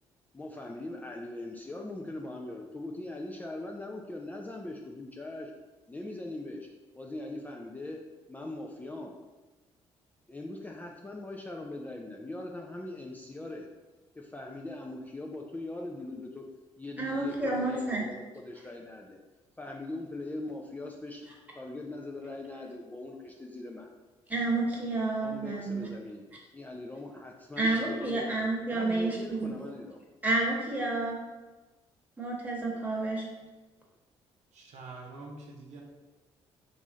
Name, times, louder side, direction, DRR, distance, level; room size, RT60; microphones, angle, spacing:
voice 1, 0.3-5.5 5.9-6.7 6.9-8.0 8.3-9.1 10.3-13.7 14.1-16.4 16.8-19.2 19.6-21.3 21.5-23.9 25.2-26.2 26.5-30.0, left 2 dB, 15° left, -1 dB, 0.4 m, -41 dB
voice 2, 17.0-18.0 24.3-25.9 27.6-29.5 30.2-31.2 32.2-33.3, right 2 dB, 15° right, -3 dB, 1.2 m, -30 dB
voice 3, 34.5-35.8, right 3 dB, 70° right, -2 dB, 0.7 m, -45 dB
3.0 x 2.6 x 3.6 m, 1.2 s
supercardioid pair, 55°, 12 cm